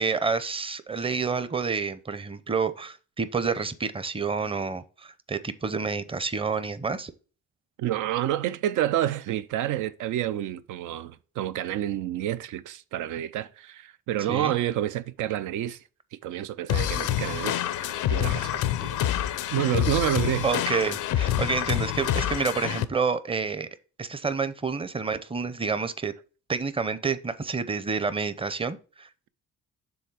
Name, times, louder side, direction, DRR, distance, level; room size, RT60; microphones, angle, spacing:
voice 1, 0.0-7.1 14.3-14.5 20.4-23.7 24.0-26.1 26.5-29.1, right 5 dB, 20° right, 0.6 m, -29 dB
voice 2, 7.8-15.8 16.2-20.5, right 12 dB, 85° right, 0.5 m, -29 dB
sound 1, 16.7-22.9, left 12 dB, 85° left, 0.6 m, -27 dB
7.1 x 3.5 x 4.8 m
cardioid pair, 90°, 30 cm